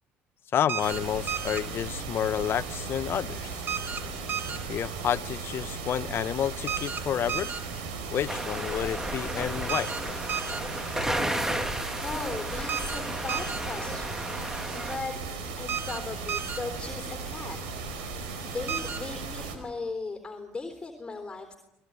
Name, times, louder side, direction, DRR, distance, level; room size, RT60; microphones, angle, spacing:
voice 1, 0.5-3.5 4.7-7.5 8.1-9.9, left 10 dB, 50° left, 0.9 m, -30 dB
sound 1, 0.7-1.0 1.3-1.6 3.7-4.0 4.3-4.6 6.7-7.0 7.3-7.6 9.7-10.0 10.3-10.6 12.7-13.0 13.3-13.6 15.7-16.0 16.3-16.6 18.7-19.0, right 7 dB, 50° right, 4.3 m, -32 dB
sound 2, 0.8-19.6, right 4 dB, 85° right, 4.9 m, -37 dB
sound 3, 8.3-15.0, right 1 dB, 10° right, 1.9 m, -33 dB
voice 2, 12.0-21.6, left 3 dB, 15° left, 3.7 m, -38 dB
28.0 x 19.5 x 9.5 m
supercardioid pair, 75°, 5 cm